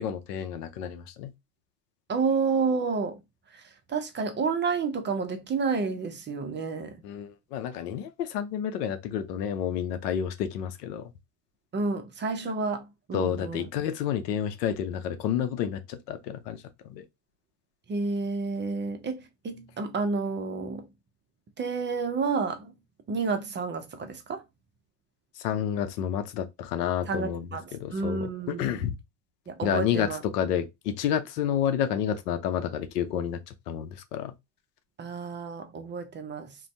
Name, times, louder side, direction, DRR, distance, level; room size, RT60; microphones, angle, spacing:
voice 1, 0.0-1.3 7.0-11.1 13.1-17.0 25.4-28.9 29.6-34.3, left 9 dB, 85° left, 0.7 m, -30 dB
voice 2, 2.1-3.2 3.5-7.0 11.7-13.7 17.9-20.9 21.6-22.8 23.1-24.4 27.1-28.9 29.5-30.2 35.0-36.6, right 4 dB, 25° right, 0.5 m, -30 dB
2.5 x 2.2 x 3.2 m
hypercardioid pair, 85°, 47 cm